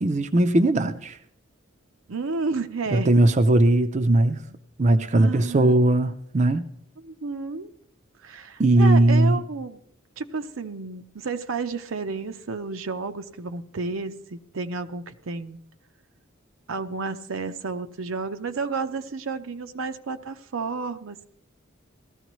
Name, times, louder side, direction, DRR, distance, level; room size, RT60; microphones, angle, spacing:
voice 1, 0.0-1.2 2.9-4.4 4.8-6.7 8.6-9.4, right 1 dB, 35° right, 9 dB, 0.5 m, -19 dB
voice 2, 2.1-3.1 5.1-5.7 7.0-7.7 8.2-9.8 10.2-15.6 16.7-21.3, right 4 dB, 80° right, 8 dB, 0.7 m, -31 dB
17.5 x 13.5 x 3.1 m, 0.70 s
head